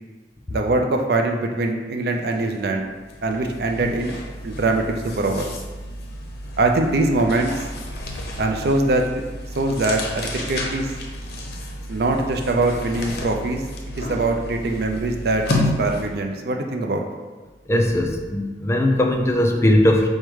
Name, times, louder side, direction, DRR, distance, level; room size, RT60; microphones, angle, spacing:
voice 1, 0.5-2.9 3.2-4.1 4.4-5.5 6.6-7.6 8.4-9.1 9.6-10.9 11.9-13.6 14.0-17.1, right 2 dB, 60° right, 3 dB, 0.4 m, -22 dB
sound 1, 2.3-2.5 2.8-16.2, left 1 dB, 60° left, 0.6 m, -31 dB
voice 2, 17.7-20.1, left 1 dB, 15° left, 2 dB, 0.3 m, -19 dB
4.8 x 2.2 x 4.6 m, 1.3 s
head